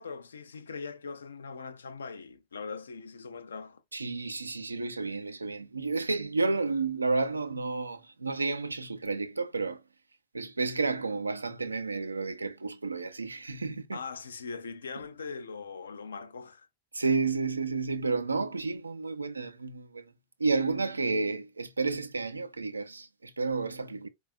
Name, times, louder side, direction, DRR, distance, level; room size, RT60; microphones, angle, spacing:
voice 1, 0.0-3.8 13.9-16.7, left 5 dB, 70° left, 0.4 m, -41 dB
voice 2, 3.9-9.8 10.3-14.0 16.9-20.0 20.4-24.1, right 4 dB, 80° right, 0.5 m, -31 dB
4.7 x 2.3 x 2.3 m
figure-of-eight pair, 90°, 0 cm